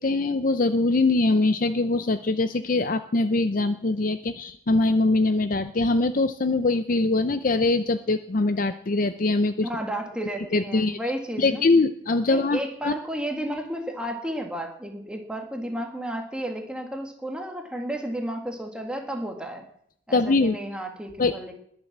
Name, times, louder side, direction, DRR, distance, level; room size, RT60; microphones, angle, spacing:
voice 1, 0.0-9.7 10.5-11.0 11.4-12.9 20.1-20.6 21.2-21.5, left 2 dB, 45° left, 11 dB, 0.6 m, -23 dB
voice 2, 9.6-11.7 12.3-19.7 20.1-21.5, right 1 dB, 5° right, 2 dB, 1.9 m, -32 dB
20.5 x 7.5 x 7.3 m, 0.66 s
head